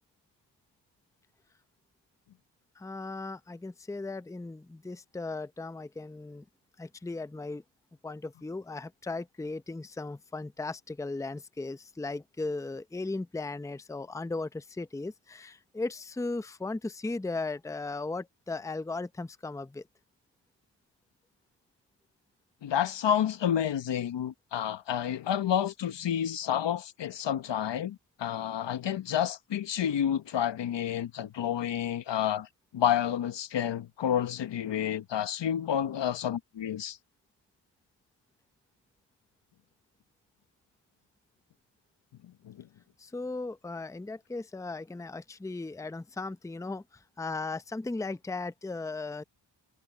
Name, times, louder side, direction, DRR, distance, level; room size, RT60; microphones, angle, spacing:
voice 1, 2.8-6.4 6.8-7.6 8.0-19.8 43.0-49.2, left 3 dB, 5° left, 0.7 m, -37 dB
voice 2, 22.6-32.5 32.7-37.0 42.4-42.7, left 9 dB, 70° left, 1.1 m, -30 dB
cardioid pair, 65°, 44 cm